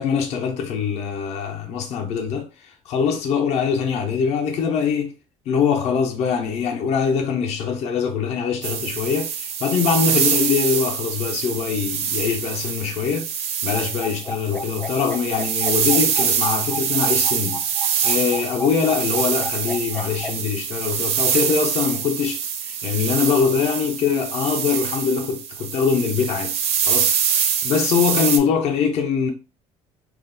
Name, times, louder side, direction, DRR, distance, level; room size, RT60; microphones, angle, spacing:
voice 1, 0.0-5.1 5.5-13.3 13.6-26.6 26.9-29.3, left 6 dB, 60° left, 0.6 m, -23 dB
sound 1, 8.6-28.4, right 7 dB, 55° right, 0.5 m, -25 dB
sound 2, 13.7-20.3, left 2 dB, 10° left, 0.3 m, -32 dB
2.5 x 2.2 x 3.8 m
cardioid pair, 140°, 13 cm